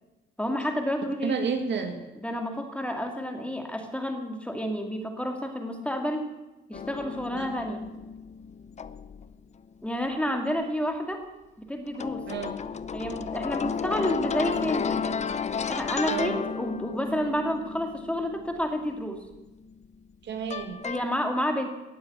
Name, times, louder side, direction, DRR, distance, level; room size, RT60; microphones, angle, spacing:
voice 1, 0.4-1.3 2.1-6.3 6.7-7.8 9.8-11.3 11.7-12.3 12.9-15.2 15.7-19.2 20.8-21.7, equal, 5° left, 4 dB, 2.4 m, -30 dB
voice 2, 1.2-2.0 7.3-7.6 12.3-12.5 16.1-16.4 20.2-20.8, right 6 dB, 65° right, 6 dB, 2.0 m, -31 dB
sound 1, 6.7-9.3 11.9-19.8 20.5-21.0, left 6 dB, 35° left, 0.7 m, -33 dB
18.5 x 7.8 x 8.3 m, 1.1 s
cardioid pair, 90°, 20 cm